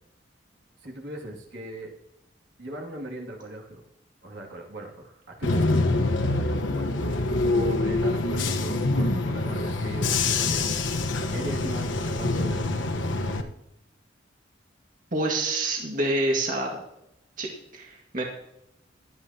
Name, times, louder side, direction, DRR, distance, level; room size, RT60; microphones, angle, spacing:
voice 1, 0.8-1.9 2.6-3.8 4.2-10.7 11.3-12.7, right 1 dB, 70° right, -1 dB, 2.4 m, -39 dB
Bus / Engine, 5.4-13.4, left 2 dB, 80° left, 1.2 m, -25 dB
voice 2, 15.1-16.8 17.4-18.2, right 2 dB, 45° right, -1 dB, 1.9 m, -27 dB
17.0 x 11.5 x 2.9 m, 0.83 s
head